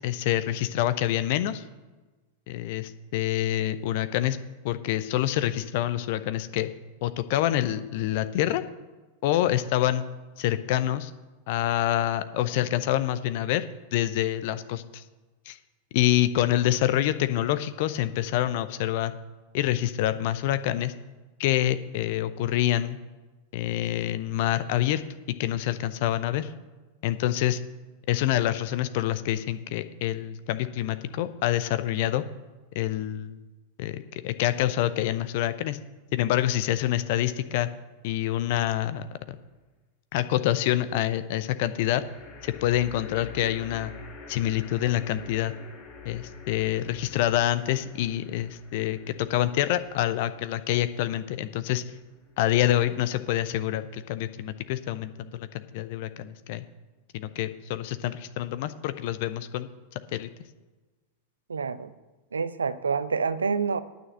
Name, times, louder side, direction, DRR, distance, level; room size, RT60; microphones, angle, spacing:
voice 1, 0.0-1.6 2.5-4.4 4.6-6.7 7.0-8.6 9.2-10.0 10.4-11.1 11.5-13.6 13.9-15.0 15.5-15.6 15.9-19.1 19.5-20.9 21.4-23.0 23.5-25.0 25.4-26.5 27.0-27.6 28.1-32.2 32.7-33.4 33.8-35.8 36.1-37.7 38.0-39.4 40.1-42.0 42.4-43.9 44.3-45.5 46.0-51.8 52.4-56.6 57.1-60.3, left 13 dB, 50° left, 12 dB, 0.6 m, -26 dB
sound 1, 38.4-39.1 41.5-52.9, left 5 dB, 35° left, 3.8 m, -48 dB
voice 2, 61.5-61.9 62.3-63.8, right 5 dB, 75° right, 15 dB, 0.5 m, -27 dB
9.3 x 6.5 x 8.6 m, 1.2 s
figure-of-eight pair, 90°, 0 cm